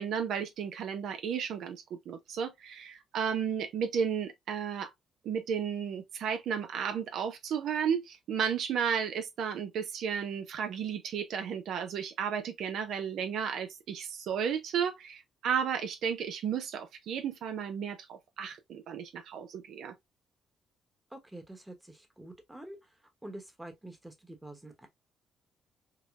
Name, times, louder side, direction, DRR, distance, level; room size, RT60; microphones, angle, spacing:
voice 1, 0.0-4.9 5.2-19.9, right 7 dB, 75° right, 0.6 m, -33 dB
voice 2, 21.1-22.8 23.2-24.9, right 1 dB, 10° right, 1.0 m, -47 dB
4.8 x 2.1 x 2.3 m
cardioid pair, 90°, 0 cm